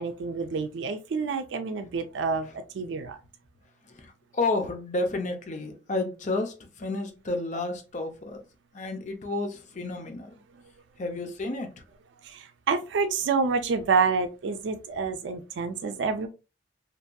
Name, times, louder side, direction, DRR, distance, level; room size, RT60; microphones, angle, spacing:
voice 1, 0.0-3.2 12.2-16.3, right 5 dB, 80° right, 0.4 m, -28 dB
voice 2, 3.9-8.4 8.7-10.3 11.0-11.8, left 2 dB, 45° left, 0.5 m, -31 dB
2.8 x 2.6 x 2.2 m
head